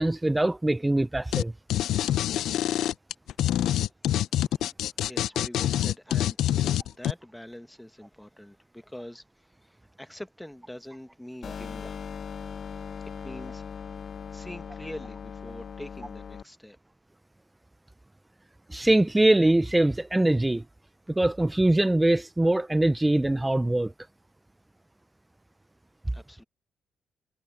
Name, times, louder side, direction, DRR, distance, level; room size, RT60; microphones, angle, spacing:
voice 1, 0.0-1.5 18.7-20.6 21.2-23.9, right 1 dB, 10° right, 0.3 m, -23 dB
sound 1, 1.3-1.4 1.7-7.1, left 12 dB, 90° left, 0.4 m, -25 dB
voice 2, 5.0-12.0 13.2-13.6 14.3-16.8 26.1-26.4, left 1 dB, 5° left, 1.2 m, -44 dB
sound 2, 11.4-16.4, left 6 dB, 50° left, 0.7 m, -39 dB
cardioid pair, 125°, 0 cm